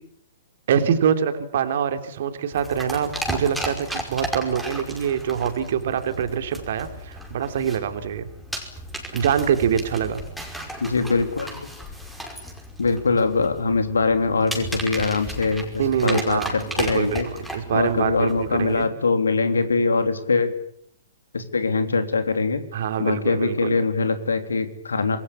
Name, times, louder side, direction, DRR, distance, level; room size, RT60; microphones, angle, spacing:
voice 1, 0.7-8.3 9.1-10.2 15.8-18.9 22.7-23.8, right 8 dB, 50° right, 9 dB, 3.2 m, -24 dB
sound 1, 2.5-18.9, equal, ahead, 5.3 m, -35 dB
voice 2, 10.8-11.6 12.8-17.3 17.7-20.5 21.3-22.6 23.0-25.2, left 4 dB, 70° left, 9 dB, 3.2 m, -22 dB
27.0 x 21.5 x 8.8 m, 0.71 s
figure-of-eight pair, 115°, 0 cm